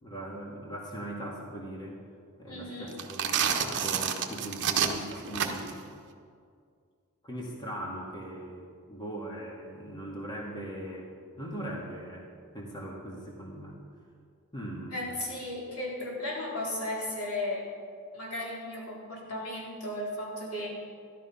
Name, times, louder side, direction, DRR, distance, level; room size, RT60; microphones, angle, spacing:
voice 1, 0.0-2.0 2.4-5.8 7.2-11.1 11.4-12.3 12.5-13.8 14.5-15.0, right 1 dB, 20° left, -2 dB, 2.1 m, -40 dB
voice 2, 2.5-2.9 14.9-17.7 18.1-20.7, left 1 dB, 90° left, -4 dB, 4.3 m, -35 dB
sound 1, 2.9-5.8, right 7 dB, 55° right, 1.1 m, -29 dB
14.0 x 11.5 x 5.8 m, 2.2 s
head